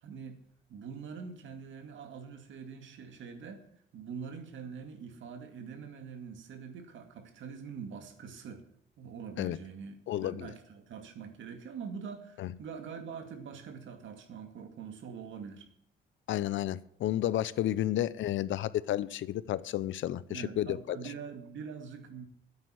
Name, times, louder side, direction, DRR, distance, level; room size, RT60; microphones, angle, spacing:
voice 1, 0.0-0.4 0.7-3.7 3.9-8.7 9.0-15.7 17.7-17.8 20.3-22.3, right 6 dB, 75° right, 6 dB, 2.2 m, -44 dB
voice 2, 10.1-10.5 12.4-12.5 16.3-20.8, left 13 dB, 75° left, 18 dB, 0.6 m, -31 dB
9.6 x 9.1 x 8.9 m, 0.70 s
cardioid pair, 90°, 20 cm